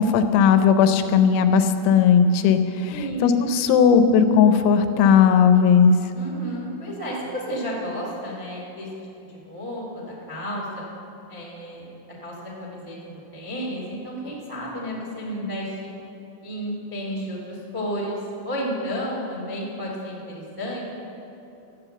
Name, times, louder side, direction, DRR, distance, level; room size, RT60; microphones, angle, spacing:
voice 1, 0.0-2.9 3.2-5.9, left 7 dB, 90° left, 8 dB, 3.1 m, -17 dB
voice 2, 2.8-3.3 6.1-8.9 9.3-10.8 11.3-11.8 12.2-13.0 13.3-15.9 16.4-18.2 18.4-20.8, equal, 35° right, -5 dB, 0.3 m, -32 dB
13.0 x 9.1 x 6.8 m, 2.9 s
omnidirectional pair, 5.3 m